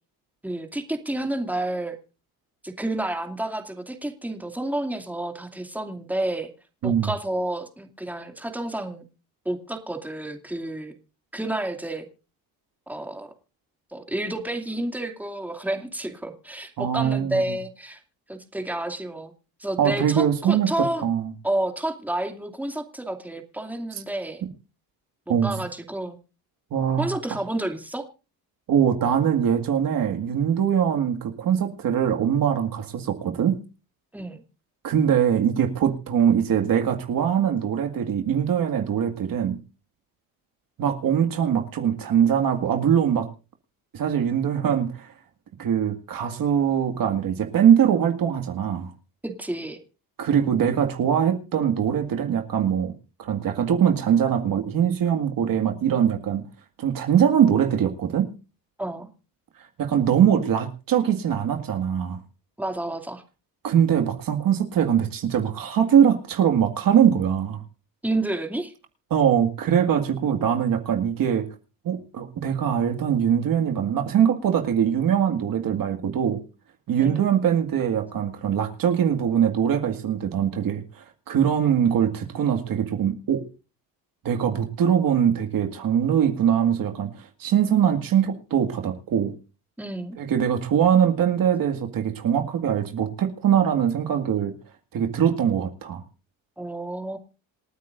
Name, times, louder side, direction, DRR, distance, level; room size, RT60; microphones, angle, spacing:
voice 1, 0.4-2.0 2.6-6.5 6.8-9.1 9.4-10.9 11.3-12.1 12.9-13.3 13.9-18.0 18.3-19.3 19.6-21.0 21.4-24.4 25.3-26.2 27.0-28.1 34.1-34.4 49.2-49.8 58.8-59.1 62.6-63.2 68.0-68.7 77.0-77.3 89.8-90.2 96.6-97.2, right 1 dB, 5° right, 2.5 m, -30 dB
voice 2, 16.8-17.6 19.8-21.3 25.3-25.6 26.7-27.1 28.7-33.6 34.8-39.6 40.8-43.3 43.9-45.1 45.6-48.9 50.2-52.9 53.2-56.4 56.8-58.3 59.8-62.2 63.6-67.6 69.1-71.5 71.8-76.4 76.9-83.5 84.2-89.3 90.2-94.5 94.9-96.0, right 8 dB, 55° right, 2.1 m, -22 dB
27.5 x 9.3 x 2.6 m
cardioid pair, 95°, 40 cm